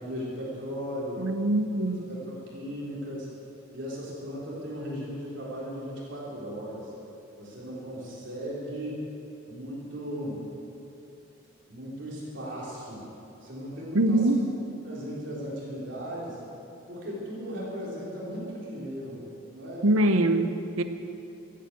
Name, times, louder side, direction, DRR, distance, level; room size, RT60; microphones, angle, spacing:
voice 1, 0.0-1.2 2.1-3.3 3.7-6.9 7.4-9.0 9.5-10.4 11.7-13.0 13.4-14.2 14.9-16.4 16.9-19.2 19.5-19.9, equal, 60° right, -6 dB, 3.9 m, -37 dB
voice 2, 1.2-2.1 13.9-14.5 19.8-20.8, right 1 dB, 85° right, 9 dB, 0.9 m, -23 dB
15.5 x 9.9 x 8.2 m, 2.8 s
head